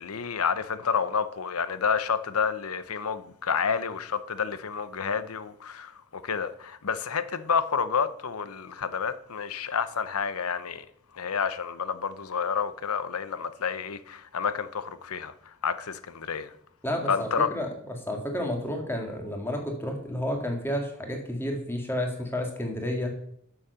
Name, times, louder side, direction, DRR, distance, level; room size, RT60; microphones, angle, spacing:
voice 1, 0.0-10.8 11.1-15.3 15.6-16.5 17.1-17.5, left 6 dB, 90° left, 0.8 m, -29 dB
voice 2, 16.8-23.1, left 1 dB, 10° left, 1.9 m, -31 dB
8.8 x 7.2 x 6.8 m
head